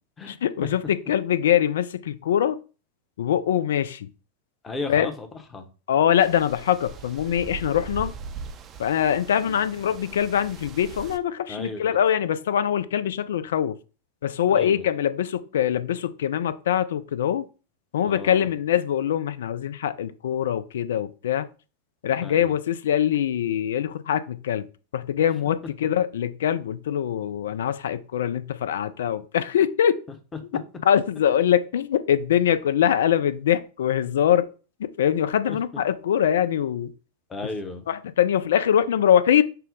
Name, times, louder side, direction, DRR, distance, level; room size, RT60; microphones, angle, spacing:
voice 1, 0.2-2.6 3.2-4.1 4.9-5.1 5.9-8.1 8.8-13.8 14.2-17.4 17.9-21.5 22.0-24.7 24.9-30.0 30.9-34.5 35.0-36.9 37.9-39.4, left 9 dB, 60° left, 0.3 m, -23 dB
voice 2, 4.6-5.7 9.3-9.6 11.5-12.0 14.5-14.9 18.1-18.5 22.2-22.5 35.5-35.6 37.3-37.9, left 3 dB, 20° left, 0.7 m, -35 dB
sound 1, 6.2-11.2, right 5 dB, 30° right, 0.4 m, -40 dB
5.5 x 2.0 x 3.8 m
figure-of-eight pair, 90°, 0 cm